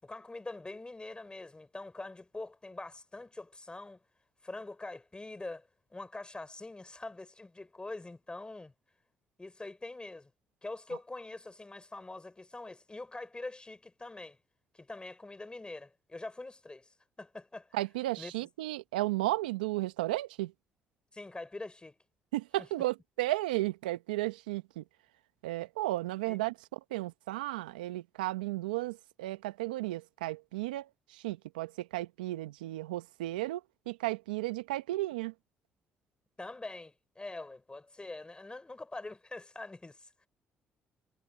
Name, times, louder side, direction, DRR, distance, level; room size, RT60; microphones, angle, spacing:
voice 1, 0.0-4.0 4.4-8.7 9.4-10.3 10.6-14.4 14.7-17.8 18.2-18.3 21.1-21.9 22.6-22.7 26.3-26.4 36.4-40.3, left 2 dB, 20° left, 6.2 m, -44 dB
voice 2, 17.7-20.5 22.3-24.8 25.4-35.3, right 17 dB, 85° right, 1.2 m, -34 dB
hypercardioid pair, 50°, 5 cm